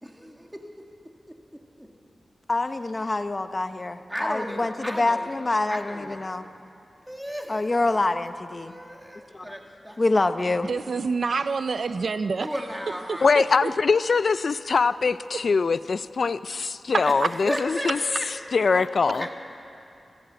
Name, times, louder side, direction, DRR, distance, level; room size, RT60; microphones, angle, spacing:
voice 1, 0.0-1.0 1.3-1.9 4.1-5.3 5.7-6.5 7.1-7.9 8.5-10.1 12.4-13.8 17.0-19.3, equal, 5° right, 2.5 m, -36 dB
voice 2, 2.5-6.5 7.5-8.7 9.3-9.4 10.0-10.7, left 2 dB, 35° left, 0.9 m, -26 dB
voice 3, 10.7-12.5 13.1-13.7, right 4 dB, 65° right, 0.5 m, -27 dB
voice 4, 13.2-18.0 18.5-19.2, left 4 dB, 65° left, 0.4 m, -22 dB
26.0 x 16.0 x 7.9 m
wide cardioid pair, 110°, 0 cm